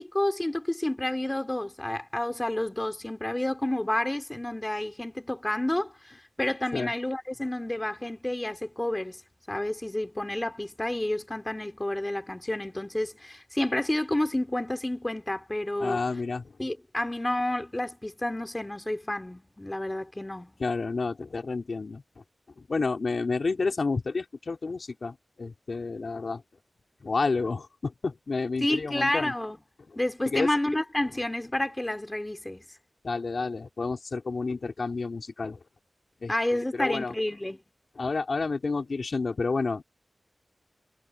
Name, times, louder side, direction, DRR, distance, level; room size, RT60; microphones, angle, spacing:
voice 1, 0.0-9.2 9.5-16.0 16.6-20.5 28.6-29.6 30.0-32.6 36.3-37.6, left 1 dB, 15° left, 3.7 m, -30 dB
voice 2, 15.8-16.5 20.6-22.0 22.6-26.4 27.0-29.3 30.3-30.5 33.0-35.6 36.2-37.1 38.0-39.8, left 4 dB, 60° left, 4.2 m, -30 dB
wide cardioid pair, 100°, 0 cm